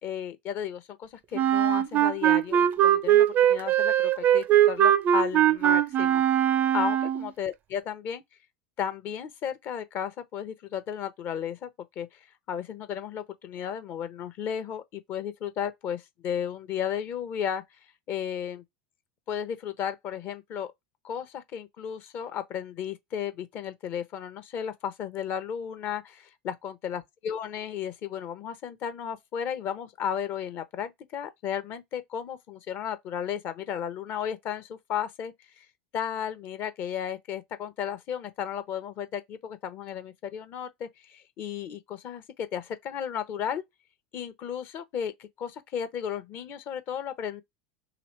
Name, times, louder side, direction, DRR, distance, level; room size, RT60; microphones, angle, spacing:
voice 1, 0.0-6.2 6.7-8.2 8.8-11.7 12.0-12.2 12.5-17.6 18.1-18.6 19.3-20.7 21.0-35.5 35.9-43.6 44.1-47.4, left 8 dB, 45° left, 0.7 m, -34 dB
Wind instrument woodwind instrument, 1.3-7.3, right 11 dB, 35° right, 0.4 m, -21 dB
3.0 x 2.9 x 3.1 m
hypercardioid pair, 80°, 5 cm